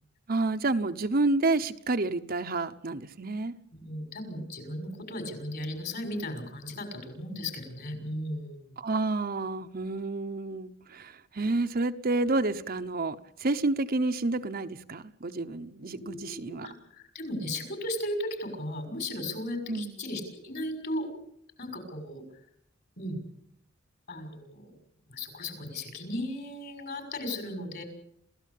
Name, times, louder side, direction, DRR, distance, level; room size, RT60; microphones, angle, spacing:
voice 1, 0.3-3.5 8.8-16.7 19.7-20.0, right 2 dB, 50° right, 0.9 m, -29 dB
voice 2, 3.7-8.8 16.0-21.1 21.6-22.2 23.0-23.2 24.1-24.7 25.1-27.8, left 1 dB, 50° left, 6.6 m, -36 dB
28.0 x 15.5 x 8.5 m
head